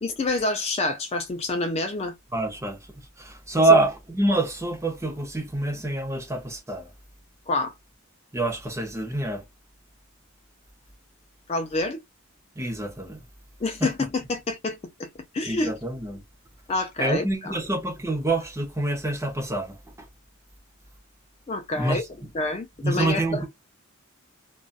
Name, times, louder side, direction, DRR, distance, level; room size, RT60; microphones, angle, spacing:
voice 1, 0.0-2.1 3.5-3.8 7.5-7.7 11.5-12.0 13.6-15.1 15.3-15.7 16.7-17.6 21.5-22.0 22.3-23.5, left 2 dB, 30° left, 0.3 m, -27 dB
voice 2, 2.3-2.8 3.2-6.9 8.3-9.4 12.6-13.2 13.8-13.9 15.5-16.2 17.0-19.8 21.8-22.1 22.8-23.5, right 2 dB, 15° right, 0.6 m, -26 dB
2.6 x 2.2 x 2.3 m
head